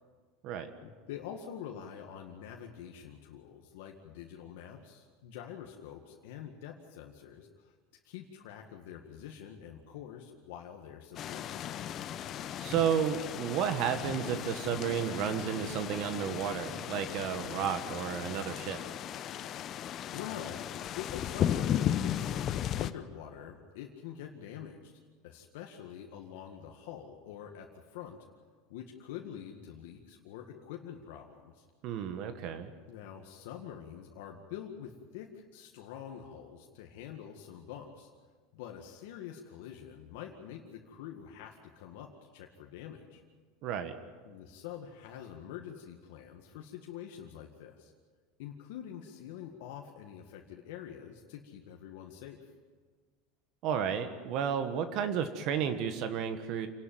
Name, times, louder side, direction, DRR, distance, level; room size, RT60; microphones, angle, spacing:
voice 1, 0.8-7.7 8.0-11.7 20.1-20.7 21.0-24.9 25.2-28.2 28.7-31.6 32.9-38.1 38.5-42.1 42.3-43.2 44.3-47.9 48.4-52.5, left 9 dB, 80° left, 1 dB, 1.9 m, -46 dB
sound 1, 11.1-22.9, left 10 dB, 40° left, 0.8 m, -36 dB
voice 2, 12.6-18.8 31.8-32.7 43.6-43.9 53.6-56.7, right 8 dB, 55° right, 9 dB, 1.6 m, -32 dB
27.5 x 11.5 x 9.2 m, 1.5 s
supercardioid pair, 125°, 0 cm